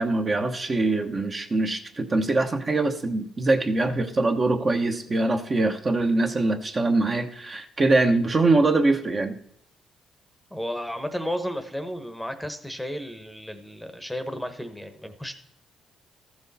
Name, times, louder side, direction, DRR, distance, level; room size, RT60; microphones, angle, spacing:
voice 1, 0.0-9.4, right 2 dB, 35° right, 5 dB, 1.1 m, -23 dB
voice 2, 10.5-15.3, equal, ahead, 8 dB, 1.0 m, -33 dB
14.0 x 6.3 x 4.2 m, 0.68 s
cardioid pair, 90°, 0 cm